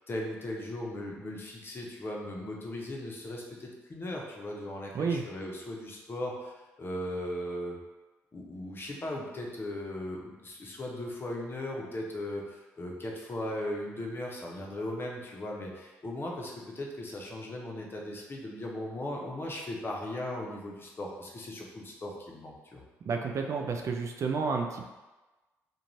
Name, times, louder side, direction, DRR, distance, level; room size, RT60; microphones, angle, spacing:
voice 1, 0.0-7.8 8.3-22.8, left 1 dB, 35° left, -1 dB, 0.7 m, -38 dB
voice 2, 23.0-24.9, right 5 dB, 50° right, 3 dB, 0.3 m, -31 dB
2.5 x 2.2 x 3.0 m, 1.1 s
supercardioid pair, 55°, 6 cm